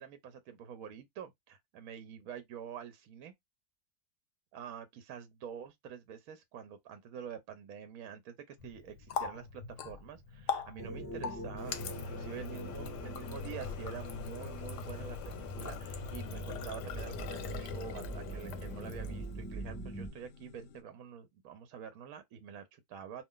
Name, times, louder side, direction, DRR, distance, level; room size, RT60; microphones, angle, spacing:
voice 1, 0.0-3.3 4.5-23.2, right 8 dB, 70° right, 0.9 m, -47 dB
Water tap faucet, 8.6-19.4, left 6 dB, 90° left, 1.2 m, -42 dB
sound 1, 10.8-20.1, right 1 dB, 20° left, 0.6 m, -43 dB
sound 2, 13.2-20.8, left 4 dB, 70° left, 0.8 m, -52 dB
2.5 x 2.4 x 3.6 m
omnidirectional pair, 1.8 m